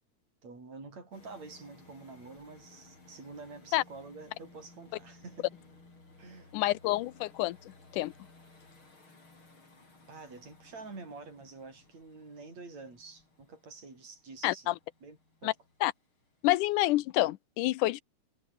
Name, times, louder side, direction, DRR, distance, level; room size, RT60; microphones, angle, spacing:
voice 1, 0.4-5.5 6.2-6.5 10.1-14.7 15.0-15.6, right 3 dB, 60° right, 8.9 m, -48 dB
sound 1, 1.1-16.6, left 3 dB, 40° left, 7.1 m, -59 dB
voice 2, 6.5-7.6 7.9-8.1 14.4-14.7 15.4-15.5 15.8-15.9 16.4-18.0, left 17 dB, 85° left, 2.3 m, -28 dB
omnidirectional pair, 3.6 m